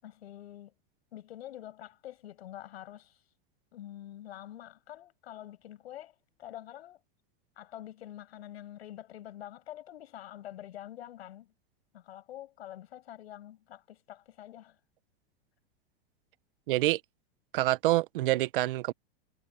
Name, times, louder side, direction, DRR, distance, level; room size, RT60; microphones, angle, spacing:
voice 1, 0.0-0.7 1.1-3.2 3.7-7.0 7.6-11.5 11.9-14.8, left 12 dB, 90° left, 6.7 m, -46 dB
voice 2, 16.7-17.0 17.5-18.9, right 17 dB, 60° right, 0.8 m, -26 dB
supercardioid pair, 170°, 31 cm